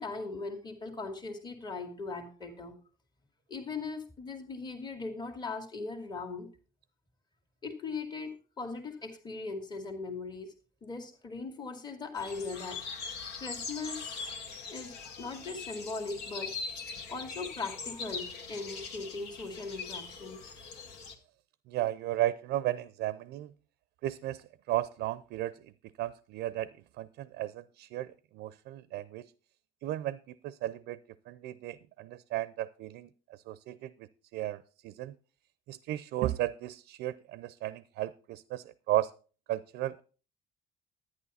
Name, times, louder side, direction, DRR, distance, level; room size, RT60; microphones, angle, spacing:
voice 1, 0.0-2.7 3.5-6.5 7.6-10.5 10.8-12.8 13.4-14.3 14.7-16.5 17.1-20.5, left 3 dB, 25° left, 3 dB, 1.9 m, -39 dB
sound 1, 12.2-21.1, left 4 dB, 75° left, 1.8 m, -41 dB
voice 2, 21.7-23.5 24.0-25.7 26.0-26.7 27.0-29.3 29.8-31.0 31.3-33.9 34.3-35.1 35.7-39.1 39.5-40.0, right 14 dB, 80° right, 17 dB, 0.5 m, -34 dB
11.0 x 9.9 x 4.1 m, 0.37 s
cardioid pair, 110°, 17 cm